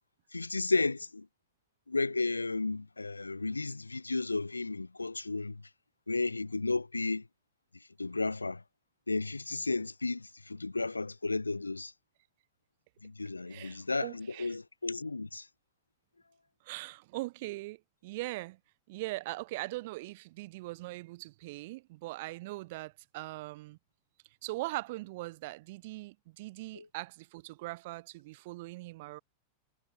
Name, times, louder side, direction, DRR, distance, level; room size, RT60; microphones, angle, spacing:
voice 1, 0.3-1.3 1.9-5.6 6.1-7.2 8.0-8.6 9.1-11.9 13.0-15.4 26.7-26.8, left 3 dB, 80° left, 0.9 m, -33 dB
voice 2, 13.5-14.6 16.6-18.6 18.9-23.8 24.4-29.2, right 20 dB, 50° right, 2.5 m, -41 dB
figure-of-eight pair, 90°, 0 cm